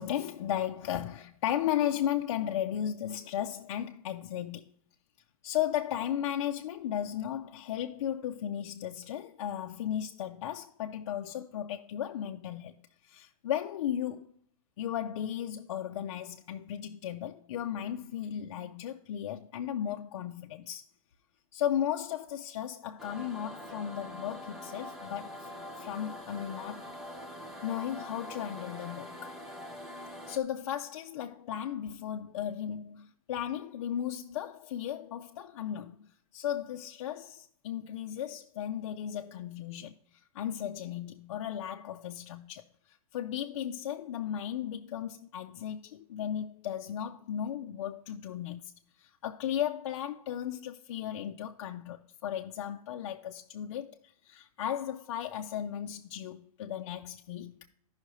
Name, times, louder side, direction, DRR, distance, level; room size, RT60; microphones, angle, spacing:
voice 1, 0.0-4.6 5.4-12.8 13.0-14.3 14.8-20.8 21.5-25.5 25.8-26.8 27.6-29.3 30.3-42.6 43.1-48.7 49.0-57.7, left 10 dB, 50° left, 0.5 m, -35 dB
sound 1, 23.0-30.4, left 1 dB, ahead, 0.4 m, -44 dB
14.5 x 5.7 x 3.0 m
supercardioid pair, 175°, 19 cm